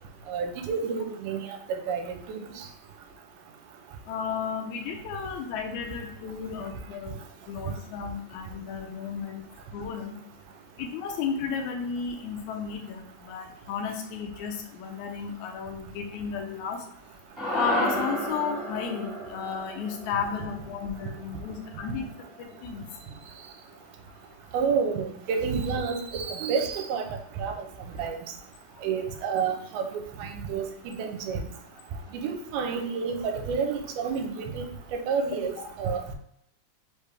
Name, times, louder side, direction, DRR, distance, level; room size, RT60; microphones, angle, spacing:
voice 1, 0.3-2.7 24.5-27.0 27.4-27.5 28.0-28.2 28.8-30.7 31.0-31.4 32.2-34.7 34.9-36.2, right 5 dB, 85° right, 5 dB, 2.0 m, -29 dB
voice 2, 4.1-7.1 7.5-9.4 9.7-10.2 10.8-16.8 17.5-22.1 22.4-22.8 26.3-26.4 35.6-35.7, left 6 dB, 80° left, 4 dB, 1.9 m, -33 dB
sound 1, 17.4-21.8, equal, ahead, 0.7 m, -32 dB
4.8 x 3.3 x 3.2 m, 0.73 s
omnidirectional pair, 3.5 m